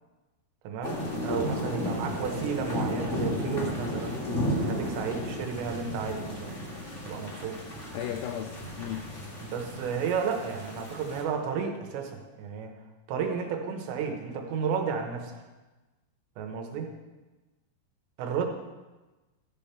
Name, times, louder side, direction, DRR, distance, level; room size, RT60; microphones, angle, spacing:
voice 1, 0.6-1.0 1.2-4.2 4.6-6.6 7.1-7.6 9.4-12.7 13.1-15.4 16.4-16.9 18.2-18.5, right 6 dB, 75° right, 3 dB, 3.3 m, -32 dB
sound 1, 0.8-11.2, equal, 50° left, 0.8 m, -33 dB
voice 2, 7.9-9.1, left 10 dB, 85° left, 4 dB, 2.4 m, -35 dB
13.0 x 5.4 x 5.8 m, 1.2 s
omnidirectional pair, 5.3 m